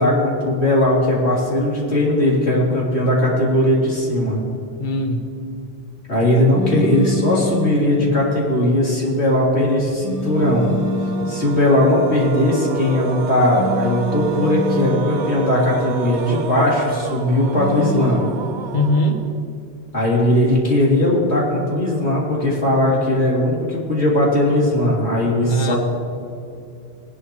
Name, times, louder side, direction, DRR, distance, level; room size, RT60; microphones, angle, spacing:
voice 1, 0.0-4.4 6.1-10.7 11.3-18.2 19.9-25.8, left 1 dB, 85° left, -6 dB, 3.7 m, -18 dB
voice 2, 4.8-5.3 18.7-19.2 25.5-25.8, left 1 dB, 50° left, 6 dB, 1.1 m, -21 dB
sound 1, 6.5-7.9 10.0-11.4 13.5-15.1 17.5-18.2, left 1 dB, 20° left, 0.8 m, -26 dB
sound 2, 10.3-19.6, right 7 dB, 60° right, 0.6 m, -30 dB
19.5 x 11.0 x 3.2 m, 2.5 s
omnidirectional pair, 1.1 m